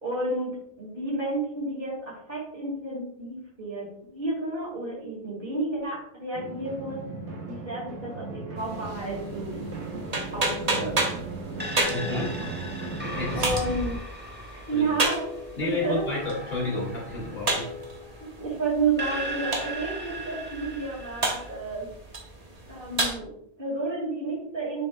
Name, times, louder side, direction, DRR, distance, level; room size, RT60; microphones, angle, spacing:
voice 1, 0.0-7.1 7.5-9.6 10.3-11.2 13.3-14.0 14.5-15.2 15.6-16.1 18.2-21.9 22.7-24.8, right 3 dB, 50° right, -9 dB, 2.6 m, -31 dB
sound 1, 6.3-14.0, right 3 dB, 80° right, 1.5 m, -36 dB
sound 2, 8.6-23.2, right 2 dB, 35° right, 1.1 m, -33 dB
sound 3, 11.6-18.4 19.0-21.5, right 1 dB, 10° right, 1.0 m, -38 dB
voice 2, 11.9-12.4 12.7-13.4 14.7-15.0 15.6-17.7, left 2 dB, 60° left, -4 dB, 2.4 m, -31 dB
6.9 x 6.6 x 2.3 m, 0.72 s
omnidirectional pair, 1.2 m